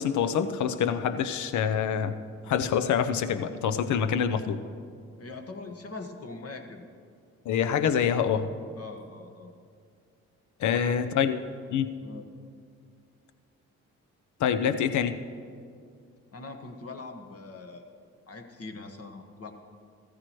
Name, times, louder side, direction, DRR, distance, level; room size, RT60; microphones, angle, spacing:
voice 1, 0.0-2.1 2.5-4.6 7.5-8.5 10.6-11.4 11.7-11.9 14.4-15.2, left 8 dB, 60° left, 10 dB, 0.7 m, -26 dB
voice 2, 5.1-6.8 8.8-9.5 10.6-11.1 12.0-12.3 16.3-18.0 18.3-19.5, left 3 dB, 45° left, 5 dB, 1.3 m, -42 dB
14.0 x 14.0 x 3.1 m, 2.3 s
hypercardioid pair, 45°, 33 cm